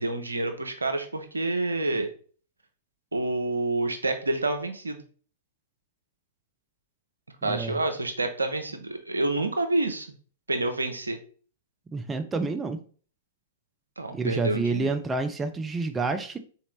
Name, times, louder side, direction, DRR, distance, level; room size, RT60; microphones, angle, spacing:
voice 1, 0.0-2.1 3.1-5.0 7.4-10.1 10.5-11.2 14.0-15.0, right 2 dB, 80° right, 7 dB, 0.6 m, -28 dB
voice 2, 7.4-7.8 11.9-12.8 14.1-16.4, right 3 dB, 15° right, 7 dB, 0.4 m, -28 dB
4.0 x 2.8 x 3.1 m, 0.42 s
figure-of-eight pair, 105°, 0 cm